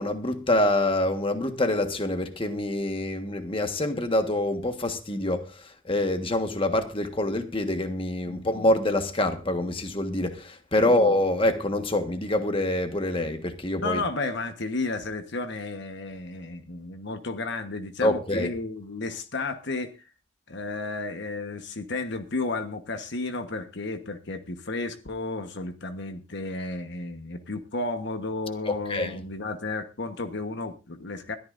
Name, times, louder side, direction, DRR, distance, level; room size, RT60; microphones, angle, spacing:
voice 1, 0.0-5.5 5.8-14.0 18.0-18.5 28.7-29.1, left 1 dB, 25° left, 1.4 m, -26 dB
voice 2, 13.8-20.1 20.5-31.4, left 3 dB, 55° left, 1.2 m, -33 dB
21.5 x 13.5 x 2.6 m
head